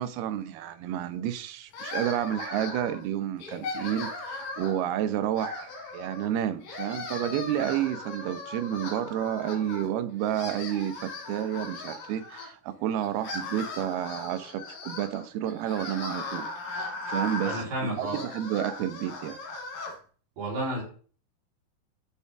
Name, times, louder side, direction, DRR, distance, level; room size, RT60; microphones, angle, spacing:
voice 1, 0.0-19.4, right 11 dB, 90° right, 2.8 m, -30 dB
sound 1, 1.7-3.0 3.4-4.9 5.3-6.3 6.6-9.9 10.2-12.5 13.0-20.0, left 2 dB, 65° left, 4.1 m, -38 dB
voice 2, 17.4-18.2 20.4-20.8, right 1 dB, 70° right, 5.2 m, -31 dB
14.5 x 5.6 x 3.5 m
omnidirectional pair, 4.4 m